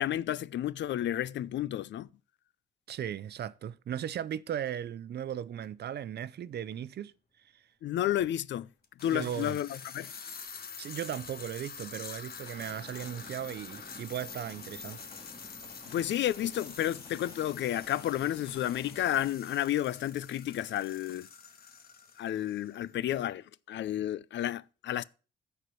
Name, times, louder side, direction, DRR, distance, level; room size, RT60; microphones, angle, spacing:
voice 1, 0.0-2.1 7.8-8.7 9.0-10.1 15.9-21.3 22.2-25.0, left 12 dB, 65° left, 0.6 m, -31 dB
voice 2, 2.9-7.1 7.5-7.6 9.1-9.6 10.8-15.0, right 10 dB, 55° right, 0.7 m, -37 dB
sound 1, 5.6-5.7 6.7-6.8 8.8-23.0, left 6 dB, 50° left, 1.6 m, -47 dB
sound 2, 10.1-19.3, left 2 dB, 25° left, 2.1 m, -53 dB
13.0 x 4.7 x 6.9 m
cardioid pair, 90°, 20 cm